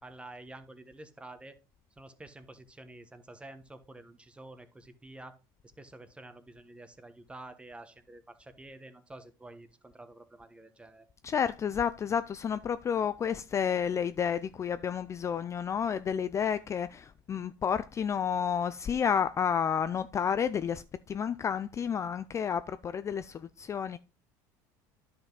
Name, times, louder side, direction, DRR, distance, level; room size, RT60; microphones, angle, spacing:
voice 1, 0.0-1.6 2.0-5.4 5.8-11.1, right 2 dB, 10° right, 1.1 m, -49 dB
voice 2, 11.2-24.0, left 7 dB, 30° left, 0.4 m, -30 dB
10.0 x 5.7 x 3.9 m
supercardioid pair, 100°, 10 cm